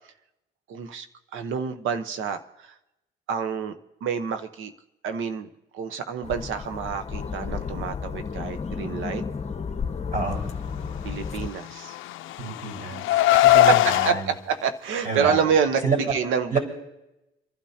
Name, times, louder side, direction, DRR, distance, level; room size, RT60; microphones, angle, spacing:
voice 1, 0.7-1.1 1.3-2.7 3.3-3.7 4.0-4.7 5.0-9.2 11.0-12.0 13.3-13.8 14.0-16.6, right 7 dB, 85° right, 9 dB, 1.1 m, -28 dB
sound 1, 6.2-11.5, left 6 dB, 35° left, 1.0 m, -32 dB
Car, 11.6-14.1, left 15 dB, 90° left, 0.4 m, -20 dB
voice 2, 12.4-14.3 15.0-15.4 15.8-16.0 16.5-16.6, right 3 dB, 45° right, 0 dB, 5.2 m, -28 dB
29.0 x 12.0 x 2.9 m, 0.91 s
cardioid pair, 90°, 20 cm